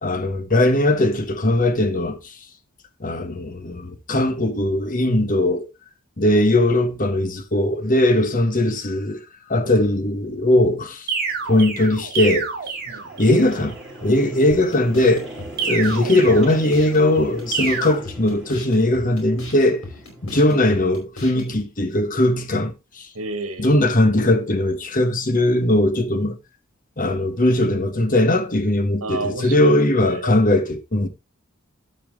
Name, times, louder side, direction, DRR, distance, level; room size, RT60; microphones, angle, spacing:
voice 1, 0.0-2.3 3.0-5.7 6.2-9.2 9.5-11.1 11.4-12.5 13.2-15.3 15.6-19.8 20.2-23.1 23.6-26.4 27.0-31.1, left 1 dB, 40° left, 1.3 m, -19 dB
sound 1, 11.1-13.5 15.6-16.9 17.5-17.9, right 5 dB, 45° right, 2.5 m, -28 dB
sound 2, 11.3-21.0, right 1 dB, 5° right, 5.5 m, -40 dB
sound 3, 14.5-21.5, left 2 dB, 80° left, 4.9 m, -39 dB
voice 2, 23.1-23.7 29.0-30.3, right 2 dB, 85° right, 1.6 m, -29 dB
12.5 x 5.8 x 3.5 m
head